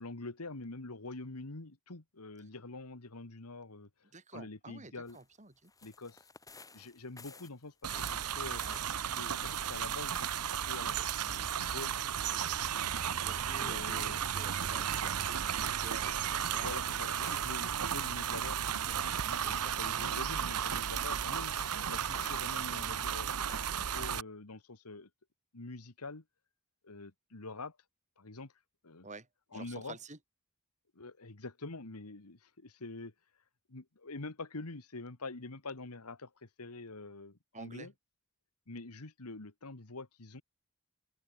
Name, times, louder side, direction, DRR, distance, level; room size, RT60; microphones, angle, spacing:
voice 1, 0.0-3.9 4.3-5.2 5.8-6.3 6.7-8.6 9.1-11.9 12.3-12.9 13.5-14.2 16.5-25.1 25.5-26.2 26.8-27.8 28.2-28.5 28.8-29.1 29.5-30.0 31.0-33.1 33.7-37.9 38.7-40.4, left 3 dB, 85° left, 1.8 m, -46 dB
voice 2, 4.1-5.7 13.2-16.8 19.4-19.8 29.0-29.3 29.5-30.2 37.5-37.9, right 3 dB, 35° right, 5.6 m, -50 dB
sound 1, 5.1-5.4 5.6-14.6 15.0-16.0 16.5-18.6 18.9-23.7, left 4 dB, 15° left, 6.2 m, -56 dB
sound 2, 7.8-24.2, right 9 dB, 85° right, 0.9 m, -34 dB
open air
head